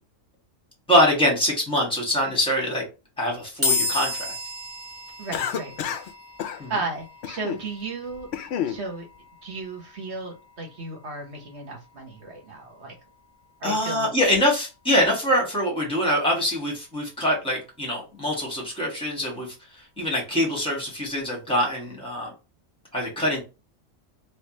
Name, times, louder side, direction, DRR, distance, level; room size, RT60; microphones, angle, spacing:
voice 1, 0.9-2.8 3.2-4.3 6.6-6.7 13.6-22.3 22.9-23.4, equal, 5° left, 1.5 m, -24 dB
sound 1, 3.6-17.0, left 3 dB, 10° right, 1.0 m, -35 dB
voice 2, 5.2-6.0 6.5-9.1 9.4-13.0 13.6-14.1, right 3 dB, 55° right, 1.3 m, -35 dB
Cough, 5.3-6.1 6.4-6.6 7.2-7.6 8.1-8.8, left 9 dB, 65° left, 0.7 m, -30 dB
3.3 x 3.1 x 3.0 m
omnidirectional pair, 1.4 m